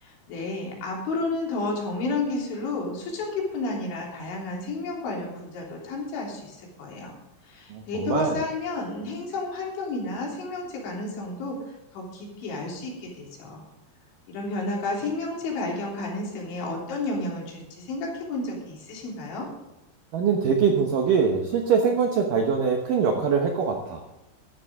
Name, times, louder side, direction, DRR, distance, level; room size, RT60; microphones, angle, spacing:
voice 1, 0.0-7.1 7.5-11.6 11.9-13.6 14.3-19.5, left 2 dB, 75° left, -2 dB, 5.7 m, -31 dB
voice 2, 7.7-8.4 20.1-24.0, right 6 dB, 75° right, 2 dB, 2.0 m, -23 dB
14.0 x 11.5 x 3.7 m, 0.98 s
omnidirectional pair, 5.5 m